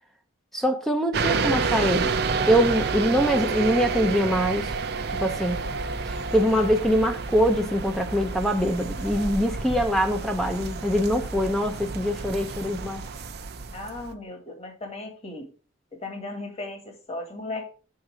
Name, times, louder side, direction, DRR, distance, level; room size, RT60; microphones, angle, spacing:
voice 1, 0.5-2.2 2.5-4.7 5.2-5.6 6.1-13.0, equal, ahead, 0.6 m, -23 dB
sound 1, 1.1-14.1, right 4 dB, 55° right, 0.6 m, -29 dB
voice 2, 13.7-15.5 16.0-17.7, left 2 dB, 30° left, 1.7 m, -36 dB
6.5 x 3.8 x 6.0 m
head